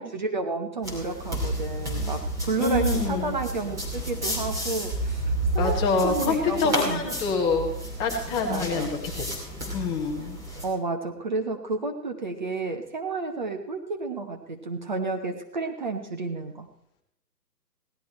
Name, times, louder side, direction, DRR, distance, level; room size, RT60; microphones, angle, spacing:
voice 1, 0.0-5.8 6.0-7.0 8.5-8.9 10.6-16.7, right 3 dB, 30° right, 4 dB, 0.9 m, -31 dB
sound 1, 0.8-10.7, right 1 dB, 5° right, 2.6 m, -31 dB
voice 2, 2.6-3.4 5.6-7.7 8.0-9.3 9.7-10.4, left 4 dB, 10° left, 0 dB, 1.2 m, -26 dB
17.5 x 12.0 x 4.3 m, 0.73 s
figure-of-eight pair, 145°, 50 cm